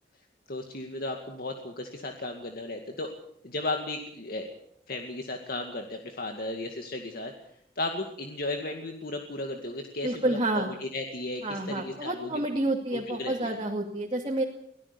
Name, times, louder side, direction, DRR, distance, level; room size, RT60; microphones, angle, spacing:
voice 1, 0.5-3.1 3.4-4.5 4.9-7.3 7.8-12.5 12.9-13.6, left 2 dB, 55° left, 4 dB, 2.2 m, -35 dB
voice 2, 10.0-10.7 11.4-14.4, right 1 dB, 30° right, -1 dB, 2.6 m, -29 dB
24.0 x 18.0 x 7.0 m, 0.66 s
head